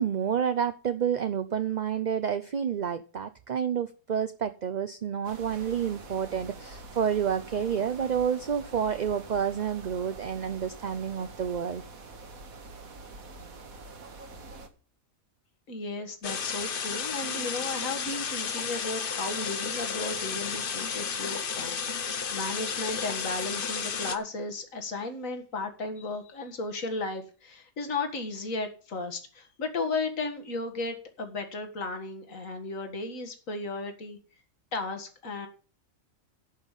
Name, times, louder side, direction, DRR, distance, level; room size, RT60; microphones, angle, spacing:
voice 1, 0.0-11.8, right 8 dB, 45° right, 0.6 m, -29 dB
sound 1, 5.2-14.7, right 3 dB, 80° right, 2.0 m, -46 dB
voice 2, 15.7-34.2 34.7-35.5, left 3 dB, 70° left, 2.2 m, -35 dB
sound 2, 16.2-24.2, left 6 dB, 45° left, 1.0 m, -32 dB
11.0 x 5.4 x 8.2 m
omnidirectional pair, 1.4 m